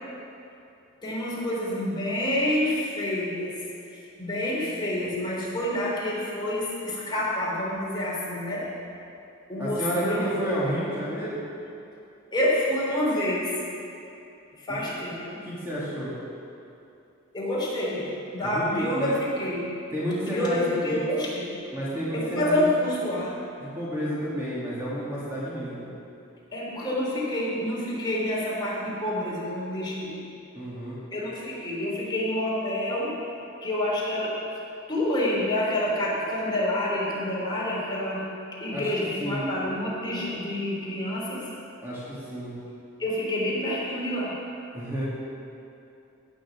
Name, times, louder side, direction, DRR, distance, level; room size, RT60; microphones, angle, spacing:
voice 1, 1.0-3.6 4.2-8.7 9.5-10.2 10.7-10.8 12.3-13.6 14.7-15.4 17.3-19.7 20.3-21.5 22.1-23.3 26.5-30.2 31.1-33.2 33.6-34.4 34.9-38.3 38.6-41.5 43.0-44.4, left 1 dB, 20° left, -6 dB, 3.6 m, -28 dB
voice 2, 9.6-11.4 14.8-14.9 15.4-16.1 18.4-19.1 19.9-21.0 21.7-22.7 23.6-25.9 30.5-31.0 38.7-38.9 39.2-39.5 41.8-42.5 44.7-45.1, equal, 10° right, -9 dB, 2.4 m, -30 dB
16.5 x 6.2 x 7.3 m, 2.7 s
head